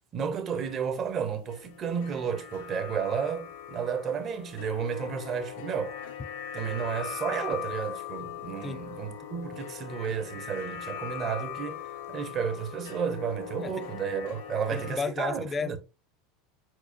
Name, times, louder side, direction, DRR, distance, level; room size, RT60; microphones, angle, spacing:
voice 1, 0.1-6.0 6.5-15.8, right 7 dB, 40° right, 0.9 m, -32 dB
sound 1, 0.5-15.0, left 10 dB, 80° left, 1.0 m, -41 dB
voice 2, 14.7-15.8, left 5 dB, 25° left, 0.5 m, -32 dB
4.8 x 4.1 x 2.7 m
hypercardioid pair, 95°, 0 cm